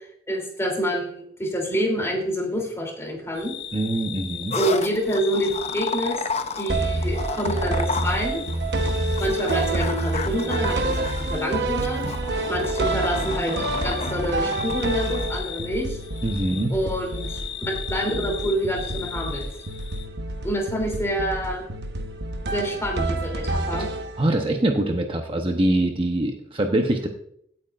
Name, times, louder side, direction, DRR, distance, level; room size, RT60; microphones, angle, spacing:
voice 1, 0.0-3.5 4.5-6.2 6.5-8.4 9.2-12.0 12.5-16.0 16.7-19.5 20.4-21.7 22.5-23.9, equal, 15° left, 1 dB, 3.0 m, -27 dB
sound 1, 3.3-20.1, left 9 dB, 80° left, 1.1 m, -39 dB
voice 2, 3.7-4.6 16.2-16.7 23.8-23.9 24.2-27.1, right 1 dB, 30° right, 4 dB, 0.9 m, -23 dB
sound 2, 4.5-15.4, left 4 dB, 40° left, 0.7 m, -33 dB
sound 3, 6.7-24.5, right 2 dB, 70° right, 1.1 m, -28 dB
16.5 x 8.6 x 2.5 m, 0.68 s
head